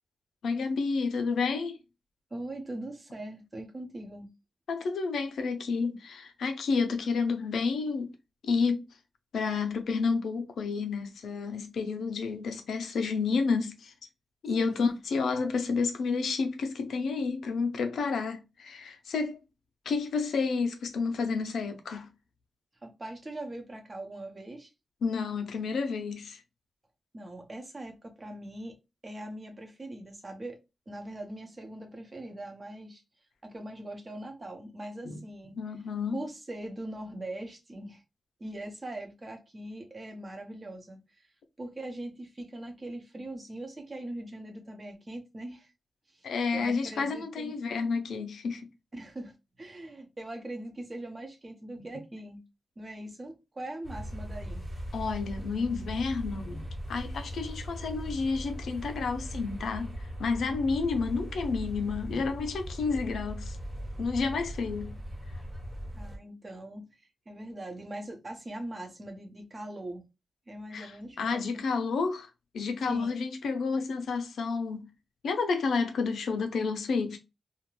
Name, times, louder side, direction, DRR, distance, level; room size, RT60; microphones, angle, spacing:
voice 1, 0.4-1.8 4.7-8.1 8.4-8.8 9.3-13.9 14.4-19.4 19.9-22.1 25.0-26.4 35.0-35.2 35.5-36.2 46.2-48.6 51.8-51.9 54.9-59.9 60.2-63.6 64.0-65.0 70.7-74.8 75.2-77.2, left 4 dB, 85° left, 0.5 m, -30 dB
voice 2, 2.3-4.3 14.6-14.9 22.8-24.7 27.1-28.8 29.0-30.6 30.9-33.0 33.4-35.5 36.1-38.0 38.4-41.3 41.6-45.7 46.1-47.6 48.9-52.4 52.8-54.6 66.0-70.0 70.5-71.5 72.9-73.2, right 1 dB, 30° right, 0.7 m, -41 dB
sound 1, 53.8-66.2, equal, 10° right, 1.0 m, -39 dB
2.4 x 2.1 x 3.0 m
wide cardioid pair, 100°, 0 cm